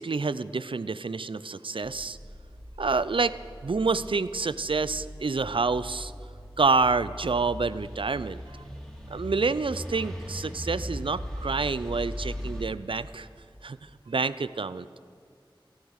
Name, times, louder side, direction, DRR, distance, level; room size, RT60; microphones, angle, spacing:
voice 1, 0.0-2.2 2.8-3.4 3.6-6.1 6.6-8.6 9.1-13.3 13.6-13.8 14.1-15.1, right 4 dB, 75° right, 15 dB, 0.4 m, -28 dB
sound 1, 1.8-12.6, equal, 5° left, 2.7 m, -39 dB
15.5 x 12.0 x 6.5 m, 2.3 s
wide cardioid pair, 50°, 9 cm